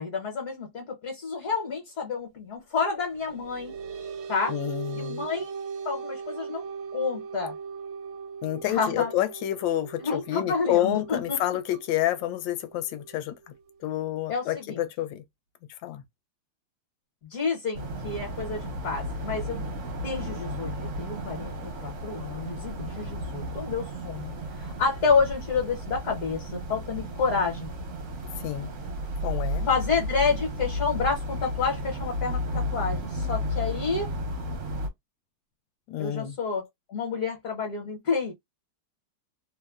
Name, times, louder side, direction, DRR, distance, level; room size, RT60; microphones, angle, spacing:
voice 1, 0.0-3.7 4.3-4.5 5.0-5.6 5.8-6.7 6.9-7.5 8.7-9.1 10.0-11.4 14.3-14.8 17.3-19.7 20.0-20.7 21.0-27.7 29.7-34.1 36.0-38.3, left 5 dB, 60° left, 1.2 m, -29 dB
sound 1, 3.1-14.1, right 6 dB, 85° right, 1.3 m, -40 dB
voice 2, 4.5-5.2 8.4-13.4 13.8-15.2 15.8-16.0 28.4-28.7 29.2-29.7 35.9-36.4, left 13 dB, 80° left, 1.3 m, -29 dB
sound 2, 17.7-34.9, equal, 65° right, 0.7 m, -33 dB
3.1 x 2.1 x 2.3 m
omnidirectional pair, 2.1 m